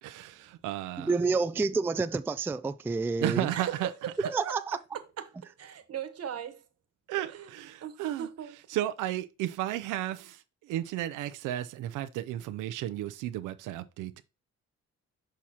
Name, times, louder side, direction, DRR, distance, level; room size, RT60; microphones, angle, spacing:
voice 1, 0.0-1.1 3.2-3.9 7.1-8.3 8.7-10.4 10.7-14.2, right 13 dB, 90° right, 0.5 m, -33 dB
voice 2, 1.0-3.5 4.3-4.6, right 4 dB, 10° right, 0.3 m, -28 dB
voice 3, 3.5-4.6 5.2-5.3 5.6-6.6 7.3-7.5 7.8-8.5, right 9 dB, 55° right, 1.2 m, -37 dB
6.3 x 5.7 x 2.8 m
cardioid pair, 90°, 30 cm